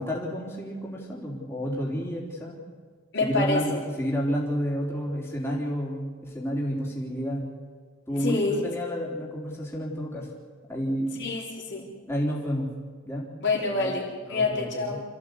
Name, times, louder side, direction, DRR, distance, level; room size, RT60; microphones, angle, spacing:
voice 1, 0.0-2.6 3.2-7.5 8.1-10.3 10.7-11.2 12.1-12.7 13.1-13.3 13.6-13.9 14.3-15.1, equal, 10° left, -3 dB, 3.6 m, -30 dB
voice 2, 3.1-3.6 8.2-8.6 11.2-11.9 13.4-15.0, left 3 dB, 60° left, -2 dB, 4.2 m, -27 dB
27.5 x 14.5 x 8.3 m, 1.6 s
head